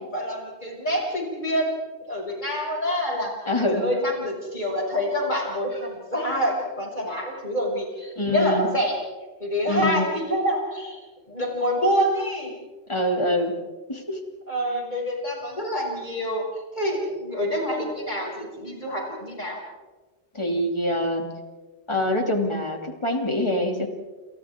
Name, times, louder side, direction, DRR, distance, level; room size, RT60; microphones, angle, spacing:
voice 1, 0.0-1.7 2.1-3.3 3.7-9.0 9.4-11.0 11.3-12.5 14.5-16.4 16.7-19.6, equal, 45° left, -2 dB, 6.5 m, -26 dB
voice 2, 3.5-3.9 8.2-8.7 9.7-10.1 12.9-13.6 13.9-14.2 20.3-21.3 21.9-23.9, left 1 dB, 25° left, 3 dB, 2.7 m, -25 dB
29.0 x 28.5 x 3.7 m, 1.4 s
omnidirectional pair, 1.1 m